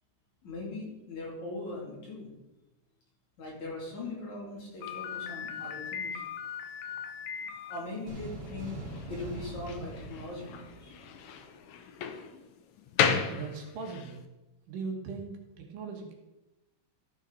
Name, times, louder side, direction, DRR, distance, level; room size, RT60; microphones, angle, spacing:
voice 1, 0.4-2.3 3.4-6.2 7.7-10.9, left 2 dB, 60° left, -4 dB, 4.0 m, -40 dB
Slam, 4.8-14.2, left 7 dB, 75° left, 1.8 m, -35 dB
sound 1, 8.1-11.5, right 2 dB, 40° right, 1.8 m, -43 dB
voice 2, 13.3-14.2 14.7-16.1, right 4 dB, 75° right, 2 dB, 2.9 m, -39 dB
13.5 x 6.1 x 4.0 m, 1.0 s
omnidirectional pair, 4.0 m